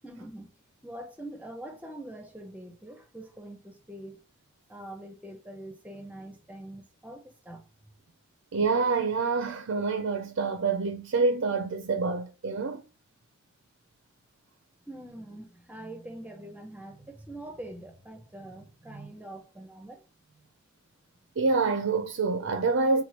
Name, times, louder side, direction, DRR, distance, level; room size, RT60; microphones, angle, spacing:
voice 1, 0.0-0.5 0.8-4.2 4.7-7.7 14.9-20.4, right 1 dB, 5° right, 0.6 m, -44 dB
voice 2, 8.5-12.8 21.4-23.0, right 4 dB, 60° right, 0.4 m, -27 dB
2.9 x 2.2 x 4.2 m
head